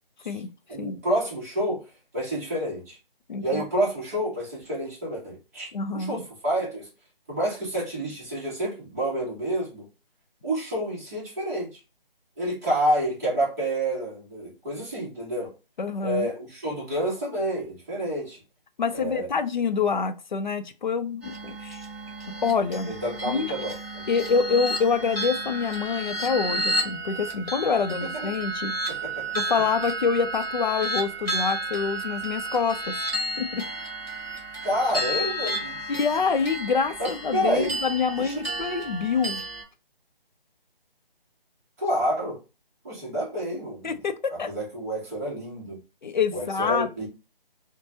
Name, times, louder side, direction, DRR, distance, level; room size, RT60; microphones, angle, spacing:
voice 1, 0.7-1.9 2.1-3.0 3.4-6.9 7.3-9.9 10.4-11.8 12.4-15.5 16.0-18.4 18.9-19.3 22.8-24.1 28.0-28.3 28.9-29.7 34.6-35.9 37.0-37.7 38.2-38.3 41.8-42.4 42.8-43.9 44.3-45.8 46.3-47.1, right 1 dB, 15° right, 0.9 m, -29 dB
voice 2, 3.3-3.6 5.7-6.2 15.8-16.3 18.8-21.8 22.4-22.9 23.3-23.7 24.1-28.8 29.3-33.0 33.4-33.6 35.9-39.4 43.8-44.5 46.0-47.1, left 5 dB, 55° left, 0.4 m, -26 dB
sound 1, 21.2-39.6, right 1 dB, ahead, 0.5 m, -32 dB
3.0 x 2.1 x 2.8 m
figure-of-eight pair, 160°, 29 cm